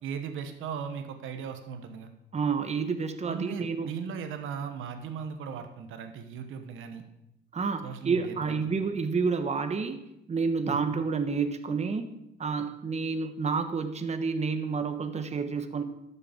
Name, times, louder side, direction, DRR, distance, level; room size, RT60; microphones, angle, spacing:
voice 1, 0.0-2.1 3.2-7.0 7.8-8.7 10.7-10.8, right 7 dB, 85° right, 7 dB, 1.2 m, -37 dB
voice 2, 2.3-3.9 7.5-10.0 10.3-12.1 12.4-15.8, right 5 dB, 35° right, 8 dB, 1.1 m, -29 dB
12.0 x 6.8 x 5.1 m, 0.86 s
cardioid pair, 90°, 20 cm